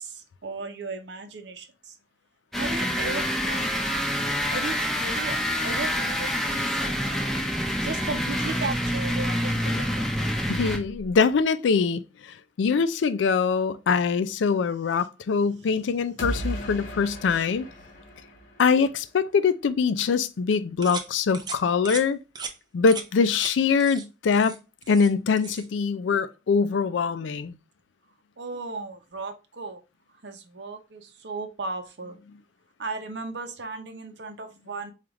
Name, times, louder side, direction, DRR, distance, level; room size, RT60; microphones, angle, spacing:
voice 1, 0.0-1.9 2.5-3.7 4.5-7.4 7.8-10.1 15.7-15.8 26.1-26.3 27.1-27.2 28.4-29.8 30.2-32.2 32.8-34.9, right 3 dB, 70° right, 0.7 m, -36 dB
sound 1, 2.5-11.0, equal, ahead, 0.7 m, -27 dB
voice 2, 10.5-17.7 18.6-22.2 22.7-24.6 24.9-27.6, left 5 dB, 90° left, 0.4 m, -23 dB
sound 2, 16.2-19.1, right 1 dB, 50° left, 1.0 m, -35 dB
sound 3, 20.8-21.1 21.3-21.6 21.8-22.0 22.4-22.5 22.9-23.1 23.3-23.5 23.8-24.0 24.3-25.1 25.4-25.7, right 5 dB, 25° right, 0.4 m, -36 dB
4.8 x 2.4 x 2.9 m
head